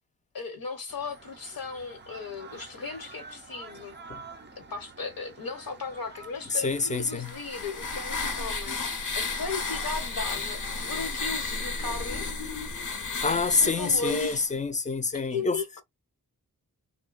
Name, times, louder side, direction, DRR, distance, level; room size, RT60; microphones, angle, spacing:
voice 1, 0.3-4.0 4.7-8.8 9.1-12.3 13.1-14.4 15.3-15.8, left 4 dB, 75° left, 1.1 m, -36 dB
sound 1, 0.9-8.9, right 4 dB, 30° right, 0.5 m, -49 dB
voice 2, 6.5-7.3 13.2-15.6, left 4 dB, 20° left, 0.4 m, -26 dB
sound 2, 6.9-14.5, left 4 dB, 55° left, 0.8 m, -33 dB
2.7 x 2.2 x 2.4 m
wide cardioid pair, 90°, 35 cm